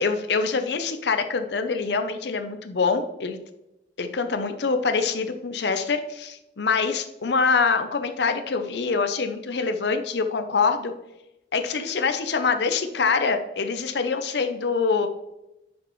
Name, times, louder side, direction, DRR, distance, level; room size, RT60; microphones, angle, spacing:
voice 1, 0.0-3.4 4.0-10.9 11.5-15.1, left 4 dB, 70° left, 7 dB, 0.6 m, -25 dB
9.4 x 6.1 x 3.1 m, 0.91 s
head